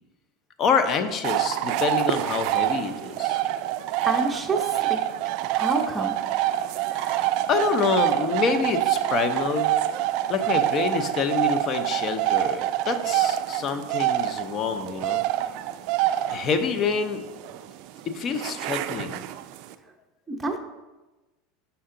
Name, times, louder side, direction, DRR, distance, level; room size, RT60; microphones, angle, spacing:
voice 1, 0.6-3.4 6.9-7.2 7.5-9.7 10.3-15.2 16.3-17.2 18.1-19.2, left 5 dB, 40° left, 9 dB, 0.6 m, -27 dB
sound 1, 1.2-19.7, right 13 dB, 60° right, 0.3 m, -26 dB
voice 2, 4.0-5.0 5.5-6.2 20.3-20.6, right 2 dB, 15° right, 2 dB, 0.7 m, -28 dB
5.7 x 5.4 x 3.8 m, 1.1 s
supercardioid pair, 115°, 0 cm